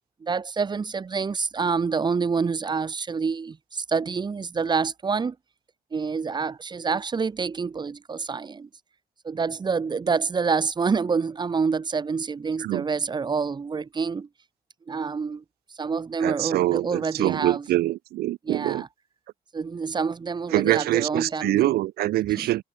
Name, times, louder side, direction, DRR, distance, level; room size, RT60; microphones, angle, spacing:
voice 1, 0.2-5.3 5.9-8.7 9.2-14.3 14.9-15.4 15.8-17.6 18.5-18.9 19.5-21.7 22.4-22.5, right 5 dB, 25° right, 1.5 m, -27 dB
voice 2, 16.2-18.8 20.5-22.6, right 16 dB, 65° right, 0.6 m, -24 dB
cardioid pair, 110°, 17 cm